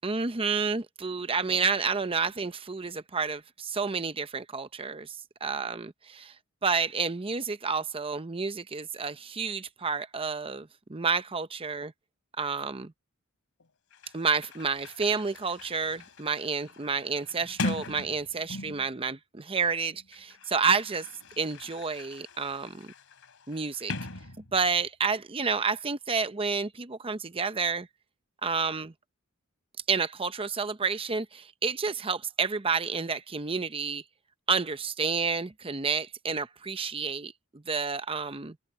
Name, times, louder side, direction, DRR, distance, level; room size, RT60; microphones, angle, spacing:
voice 1, 0.0-5.1 5.4-6.3 6.6-11.9 12.4-12.9 14.1-21.1 21.4-22.9 23.5-23.9 24.5-27.9 28.4-28.9 29.9-34.0 34.5-38.6, right 5 dB, 25° right, 0.7 m, -30 dB
Sliding door, 13.6-13.7 13.9-19.0 19.9-24.9, left 2 dB, 70° left, 3.2 m, -40 dB
head